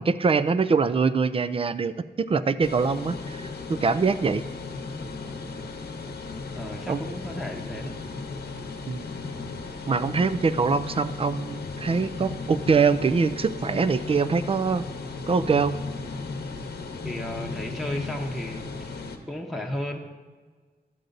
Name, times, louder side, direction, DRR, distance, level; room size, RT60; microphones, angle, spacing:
voice 1, 0.0-4.5 6.9-7.0 8.9-9.1 9.9-14.8 15.3-15.8, right 5 dB, 35° right, 14 dB, 0.4 m, -24 dB
sound 1, 2.6-19.2, left 3 dB, 70° left, 0.9 m, -36 dB
voice 2, 6.6-8.0 17.0-18.7 19.3-20.0, left 1 dB, ahead, -1 dB, 0.9 m, -34 dB
12.0 x 7.7 x 3.9 m, 1.4 s
wide cardioid pair, 105°, 17 cm